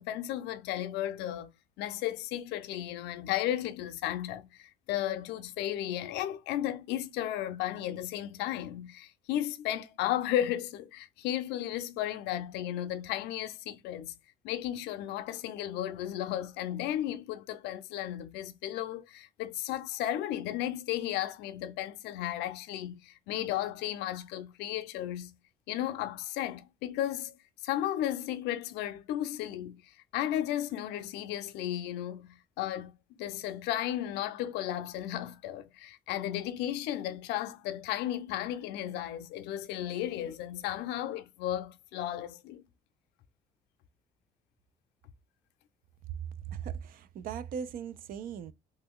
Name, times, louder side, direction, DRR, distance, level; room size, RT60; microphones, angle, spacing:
voice 1, 0.0-1.5 1.8-14.1 14.4-25.3 25.7-27.3 27.6-32.9 33.2-42.6, left 12 dB, 90° left, 0.5 m, -34 dB
voice 2, 46.5-48.5, right 8 dB, 60° right, 0.4 m, -38 dB
3.0 x 2.2 x 3.6 m
cardioid pair, 110°, 17 cm